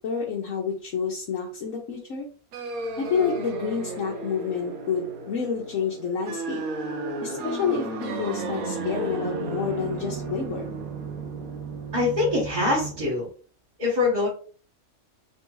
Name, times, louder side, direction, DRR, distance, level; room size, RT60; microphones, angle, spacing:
voice 1, 0.0-2.3 3.0-6.6 7.2-10.7, left 6 dB, 65° left, -2 dB, 1.2 m, -29 dB
sound 1, 2.5-13.0, right 3 dB, 85° right, 1.2 m, -33 dB
voice 2, 11.9-13.3 13.8-14.3, left 3 dB, 30° right, -8 dB, 1.8 m, -23 dB
3.7 x 3.3 x 3.0 m, 0.39 s
omnidirectional pair, 1.5 m